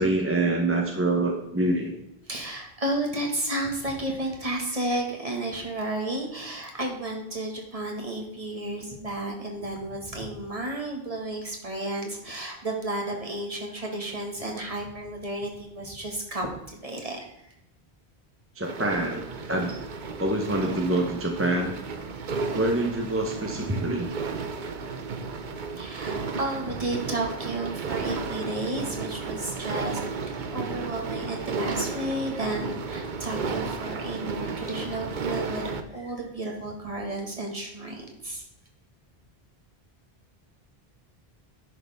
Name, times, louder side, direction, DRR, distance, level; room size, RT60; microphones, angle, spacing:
voice 1, 0.0-1.9 18.6-19.2 19.5-19.8 20.2-21.7 22.5-24.1, right 2 dB, 15° right, 1 dB, 0.9 m, -25 dB
voice 2, 2.3-17.5 25.8-38.4, right 1 dB, 35° right, 0 dB, 1.8 m, -32 dB
sound 1, 18.6-35.8, right 4 dB, 50° right, 0.8 m, -33 dB
10.5 x 6.5 x 3.5 m, 0.84 s
omnidirectional pair, 1.1 m